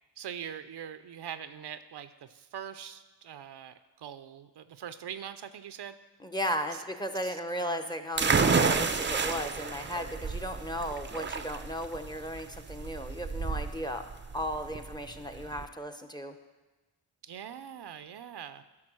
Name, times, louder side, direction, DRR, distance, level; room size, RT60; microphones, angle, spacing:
voice 1, 0.2-6.0 6.7-6.8 7.2-8.1 17.2-18.6, right 9 dB, 65° right, 11 dB, 0.6 m, -43 dB
voice 2, 6.2-14.0 14.3-16.3, equal, 10° left, 8 dB, 0.8 m, -35 dB
sound 1, 8.2-15.6, right 5 dB, 25° right, 0.6 m, -30 dB
10.5 x 6.1 x 6.1 m, 1.2 s
cardioid pair, 60°, 44 cm